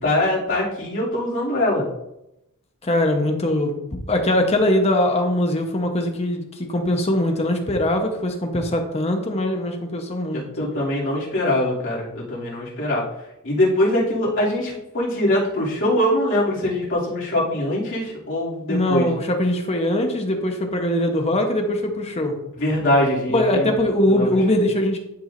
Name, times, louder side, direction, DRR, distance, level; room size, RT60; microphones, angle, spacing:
voice 1, 0.0-1.9 10.3-13.0 13.4-19.1 22.5-23.7 24.1-24.2, left 1 dB, 60° left, -7 dB, 2.8 m, -22 dB
voice 2, 2.8-10.5 18.7-22.3 23.3-25.0, left 1 dB, 30° left, 3 dB, 1.0 m, -21 dB
11.0 x 4.7 x 2.6 m, 0.87 s
head